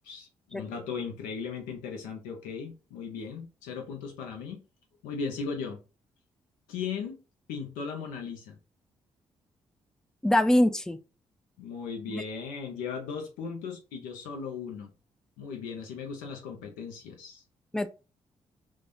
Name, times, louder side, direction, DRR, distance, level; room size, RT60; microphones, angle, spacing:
voice 1, 0.0-4.6 5.0-5.8 6.7-7.2 7.5-8.6 11.6-14.9 15.4-17.4, left 5 dB, 80° left, 0.7 m, -37 dB
voice 2, 10.2-11.0 12.1-12.2 17.7-17.9, left 1 dB, 5° left, 0.3 m, -23 dB
3.2 x 2.2 x 2.6 m
hypercardioid pair, 40°, 14 cm